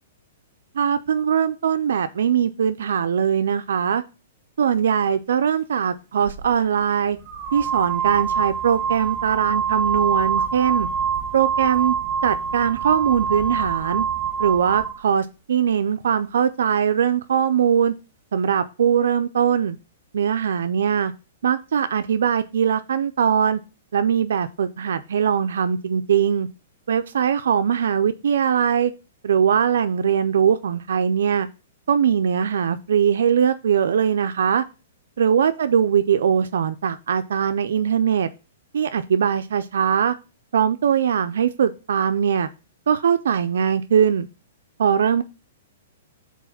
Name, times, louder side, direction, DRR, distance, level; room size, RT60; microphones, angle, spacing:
voice 1, 0.7-4.0 4.6-7.2 7.5-10.9 11.3-11.9 12.2-14.0 14.4-17.9 18.3-19.8 20.1-21.1 21.4-23.6 23.9-26.5 26.9-28.9 29.2-31.5 31.9-34.6 35.2-38.3 38.7-40.1 40.5-42.5 42.9-44.3 44.8-45.2, right 8 dB, 80° right, 9 dB, 0.4 m, -21 dB
sound 1, 6.3-6.4 7.3-15.0, right 6 dB, 15° right, 2.1 m, -25 dB
4.6 x 4.1 x 5.8 m, 0.31 s
hypercardioid pair, 160°, 0 cm